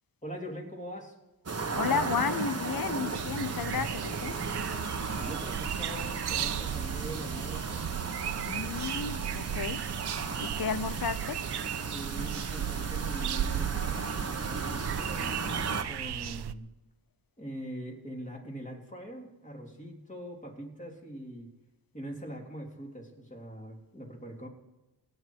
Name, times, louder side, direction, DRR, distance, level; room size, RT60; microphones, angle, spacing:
voice 1, 0.2-1.1 5.2-7.9 11.8-16.7 17.4-21.5 21.9-24.5, equal, 20° left, 3.3 m, -42 dB
sound 1, 1.5-15.8, right 4 dB, 35° right, 1.2 m, -35 dB
voice 2, 1.7-4.4 8.4-9.9 10.4-11.5, left 6 dB, 60° left, 0.8 m, -33 dB
sound 2, 3.1-16.5, right 11 dB, 70° right, 0.6 m, -36 dB
26.5 x 9.8 x 4.7 m
wide cardioid pair, 125°, 40 cm